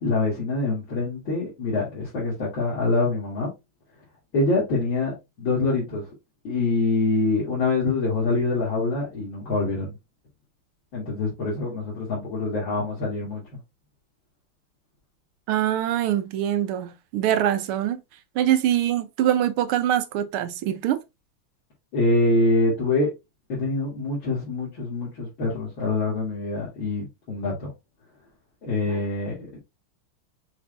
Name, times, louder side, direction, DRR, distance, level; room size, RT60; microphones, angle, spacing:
voice 1, 0.0-3.5 4.3-6.0 6.4-9.9 10.9-13.4 21.9-23.1 23.5-27.7 28.6-29.6, left 2 dB, 60° left, 2.7 m, -25 dB
voice 2, 15.5-18.0 18.3-21.0, right 11 dB, 80° right, 1.6 m, -23 dB
5.9 x 2.7 x 3.3 m
omnidirectional pair, 2.4 m